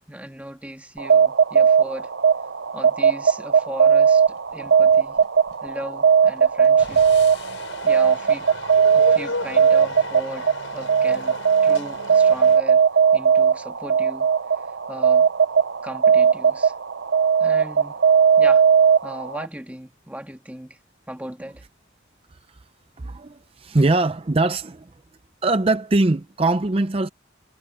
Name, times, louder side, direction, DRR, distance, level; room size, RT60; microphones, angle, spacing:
voice 1, 0.0-2.1 2.7-5.2 5.6-7.0 7.4-7.6 7.8-8.5 8.9-12.8 13.1-14.3 14.6-15.3 15.8-16.7 17.4-18.0 18.4-18.6 19.0-20.8 21.1-21.6, right 1 dB, 5° right, 1.7 m, -37 dB
sound 1, 1.0-19.5, right 6 dB, 65° right, 0.7 m, -18 dB
sound 2, 4.3-8.2, left 5 dB, 60° left, 7.0 m, -47 dB
sound 3, 6.8-12.6, left 3 dB, 90° left, 5.6 m, -35 dB
voice 2, 23.0-24.9 25.4-27.1, right 2 dB, 30° right, 0.5 m, -21 dB
head